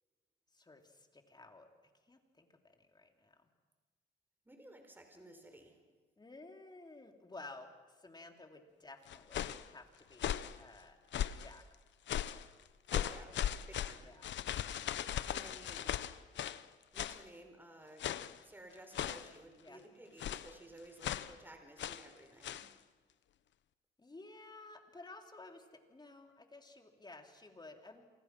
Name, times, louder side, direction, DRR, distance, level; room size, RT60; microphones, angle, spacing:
voice 1, 0.5-1.7 2.1-3.4 6.2-7.7 8.0-11.0 11.4-11.6 14.0-14.3 15.1-15.2 19.6-19.8 24.0-28.0, left 2 dB, 20° left, 4 dB, 3.5 m, -54 dB
voice 2, 4.4-5.8 12.9-13.4 13.7-14.1 14.9-16.0 16.9-18.1 18.4-22.7, right 1 dB, 10° right, 5 dB, 4.6 m, -55 dB
sound 1, 9.1-9.7 10.1-10.6 11.1-11.5 12.1-12.5 12.9-16.6 17.0-17.2 18.0-18.4 18.9-19.4 20.2-20.5 21.0-21.3 21.8-22.1 22.4-22.7, left 10 dB, 65° left, 1.0 m, -38 dB
27.5 x 26.5 x 6.2 m, 1.4 s
cardioid pair, 90°, 20 cm